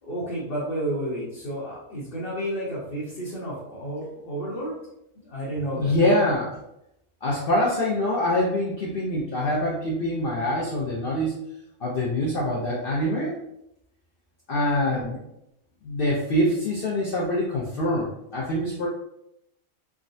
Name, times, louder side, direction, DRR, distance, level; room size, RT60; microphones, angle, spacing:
voice 1, 0.0-4.8 5.2-5.9 14.8-15.2, right 1 dB, 45° left, -8 dB, 0.9 m, -31 dB
voice 2, 5.8-6.6 7.2-11.3 11.8-13.3 14.5-15.2 15.8-18.9, left 1 dB, 65° left, -5 dB, 0.5 m, -24 dB
3.6 x 2.1 x 2.6 m, 0.81 s
omnidirectional pair, 1.5 m